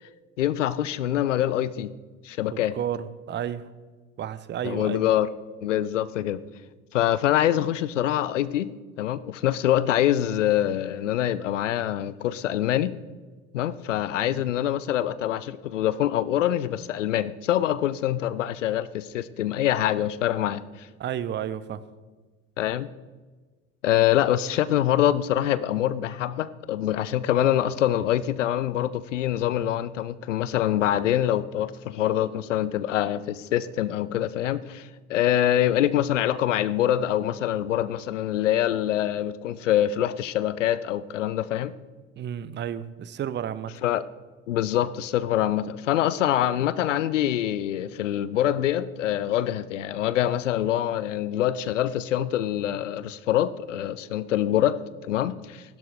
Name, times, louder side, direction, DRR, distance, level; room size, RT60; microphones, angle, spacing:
voice 1, 0.4-1.9 2.2-2.8 4.6-5.3 5.6-6.4 6.9-8.7 9.0-12.9 13.5-20.9 22.6-22.9 23.8-41.7 43.8-44.0 44.5-55.6, left 12 dB, 75° left, 17 dB, 0.6 m, -25 dB
voice 2, 2.5-3.7 4.2-5.0 14.2-14.4 21.0-21.8 42.2-43.7, right 10 dB, 30° right, 15 dB, 0.7 m, -32 dB
15.5 x 12.0 x 3.4 m, 1.3 s
figure-of-eight pair, 65°, 37 cm